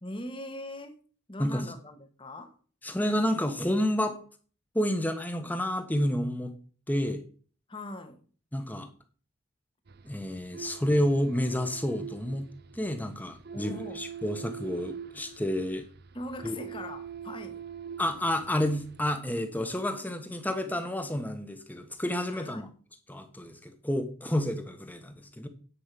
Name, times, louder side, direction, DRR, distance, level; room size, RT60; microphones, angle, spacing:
voice 1, 0.0-1.0 1.3-2.6 7.7-8.2 13.5-14.0 16.1-17.7 22.3-22.7, left 1 dB, 25° left, 1.4 m, -41 dB
voice 2, 1.4-1.7 2.8-4.2 4.7-6.5 6.9-7.2 8.5-8.9 10.0-12.5 12.7-15.8 16.4-16.6 18.0-22.7 23.1-25.5, left 1 dB, 10° left, 1.2 m, -30 dB
sound 1, 9.9-19.2, right 7 dB, 50° right, 0.5 m, -44 dB
10.0 x 5.5 x 7.6 m
head